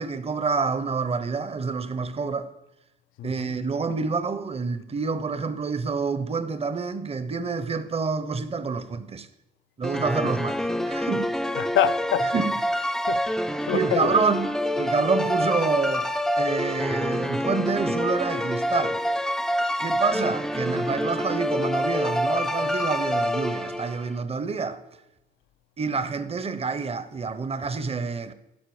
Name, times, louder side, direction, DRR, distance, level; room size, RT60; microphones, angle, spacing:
voice 1, 0.0-2.5 3.2-9.3 9.8-11.3 12.3-12.7 13.7-14.5 14.8-16.1 16.4-19.0 19.8-24.8 25.8-28.3, right 4 dB, 30° right, 0.8 m, -27 dB
voice 2, 3.2-3.6 11.6-12.3 13.1-14.2, left 11 dB, 75° left, 0.5 m, -27 dB
sound 1, 9.8-24.1, equal, ahead, 0.5 m, -26 dB
11.5 x 5.7 x 4.8 m
cardioid pair, 90°, 20 cm